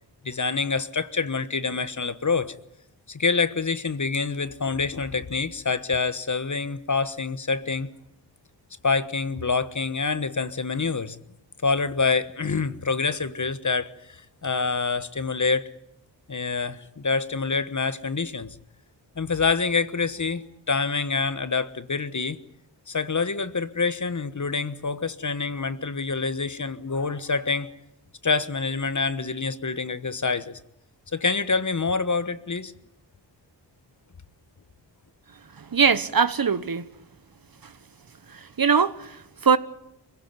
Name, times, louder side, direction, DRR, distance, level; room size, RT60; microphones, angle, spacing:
voice 1, 0.2-2.6 3.1-7.9 8.8-11.2 11.6-15.7 16.3-18.6 19.2-22.4 22.9-27.7 28.2-30.6 31.1-32.7, left 4 dB, 40° left, 1.3 m, -26 dB
voice 2, 35.6-36.8 38.3-39.6, right 6 dB, 55° right, 1.2 m, -22 dB
23.0 x 16.5 x 9.5 m
cardioid pair, 45°, 43 cm